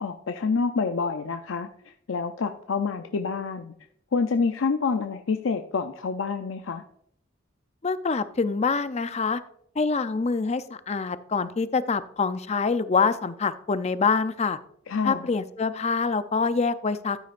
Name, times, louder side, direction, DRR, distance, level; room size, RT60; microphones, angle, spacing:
voice 1, 0.0-1.7 2.1-3.7 4.1-6.8 14.9-15.3, left 4 dB, 90° left, 6 dB, 0.5 m, -27 dB
voice 2, 7.8-9.4 9.8-14.6 15.0-17.2, left 4 dB, 35° left, 13 dB, 0.5 m, -25 dB
13.5 x 9.4 x 2.5 m, 0.68 s
head